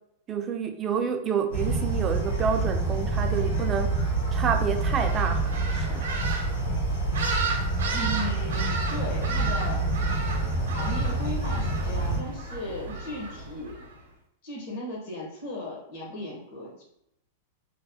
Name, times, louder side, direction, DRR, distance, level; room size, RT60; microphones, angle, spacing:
voice 1, 0.3-6.1, right 6 dB, 25° right, 6 dB, 0.3 m, -29 dB
sound 1, 1.5-12.2, right 3 dB, 80° left, 1.2 m, -27 dB
sound 2, 4.8-13.9, right 3 dB, 90° right, 0.6 m, -34 dB
voice 2, 7.9-9.9 10.7-13.8 14.4-16.8, left 1 dB, 60° left, -2 dB, 1.0 m, -36 dB
3.1 x 2.0 x 2.7 m, 0.79 s
supercardioid pair, 145°, 0 cm